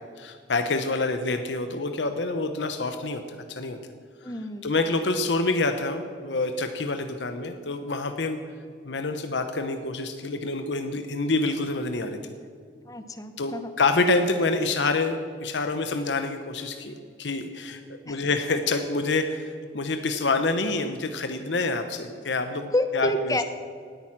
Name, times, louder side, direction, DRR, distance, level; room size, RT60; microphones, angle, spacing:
voice 1, 0.2-3.8 4.6-8.4 8.8-12.2 13.4-23.4, left 3 dB, 90° left, 7 dB, 0.9 m, -27 dB
voice 2, 4.2-4.7 12.9-13.7 18.1-18.2 22.7-23.4, left 1 dB, 20° left, 9 dB, 0.8 m, -28 dB
18.5 x 8.9 x 6.0 m, 2.2 s
head